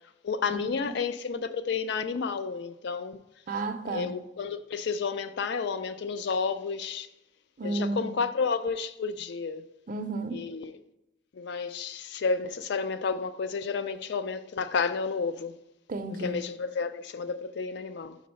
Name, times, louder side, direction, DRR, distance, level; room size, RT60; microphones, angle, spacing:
voice 1, 0.2-3.2 3.9-7.1 7.6-9.6 10.3-10.8 11.3-15.5 16.2-18.2, left 5 dB, 65° left, 0.4 m, -31 dB
voice 2, 3.5-4.1 7.6-8.2 9.9-10.4 15.9-16.4, right 2 dB, 45° right, 0.5 m, -32 dB
5.2 x 3.8 x 5.3 m
head